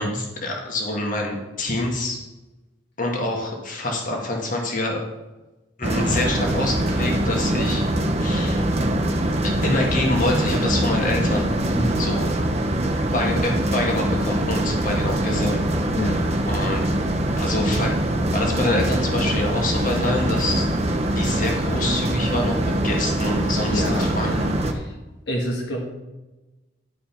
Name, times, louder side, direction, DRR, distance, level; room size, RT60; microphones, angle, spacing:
voice 1, 0.0-2.2 3.0-5.0 5.8-7.8 8.2-8.6 9.4-11.5 12.0-12.3 13.1-15.6 16.4-16.8 17.4-20.7 21.1-24.5, left 2 dB, 45° left, 0 dB, 1.8 m, -26 dB
sound 1, 5.8-24.7, right 1 dB, 35° right, 1.0 m, -23 dB
voice 2, 11.7-12.1 15.9-16.2 23.6-25.0 25.3-25.9, equal, 65° left, 0 dB, 1.6 m, -28 dB
11.5 x 5.1 x 5.8 m, 1.1 s
head